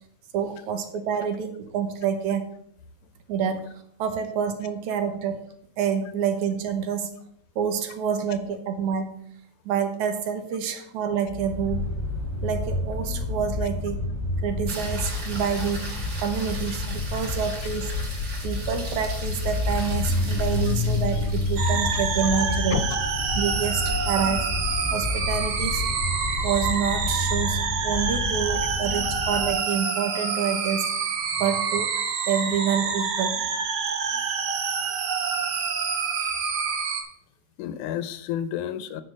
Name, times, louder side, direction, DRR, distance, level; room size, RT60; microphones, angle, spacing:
voice 1, 0.3-2.5 3.3-3.6 4.0-5.5 5.8-7.2 7.6-9.3 9.7-11.9 12.4-14.1 14.4-15.9 16.2-17.9 18.4-22.8 23.4-24.5 24.9-25.9 26.4-30.9 31.4-31.9 32.3-33.4, right 7 dB, 75° right, 7 dB, 2.4 m, -27 dB
sound 1, 11.3-29.6, left 2 dB, 20° left, 1.3 m, -29 dB
sound 2, 14.7-27.1 31.5-31.6, right 2 dB, 35° right, 2.9 m, -40 dB
sound 3, 21.6-37.0, right 5 dB, 60° right, 1.6 m, -27 dB
voice 2, 37.6-39.0, left 10 dB, 85° left, 13 dB, 2.2 m, -31 dB
10.0 x 4.9 x 6.4 m, 0.68 s
omnidirectional pair, 3.5 m